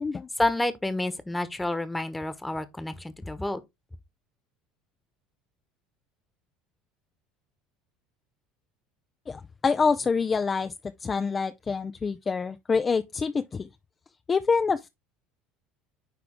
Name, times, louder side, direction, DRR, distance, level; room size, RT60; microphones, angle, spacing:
voice 1, 0.4-3.6, left 1 dB, 10° left, 1.2 m, -29 dB
voice 2, 9.3-10.7 11.0-13.7 14.3-14.9, left 5 dB, 25° left, 0.5 m, -26 dB
9.9 x 3.5 x 3.5 m
supercardioid pair, 90°, 0 cm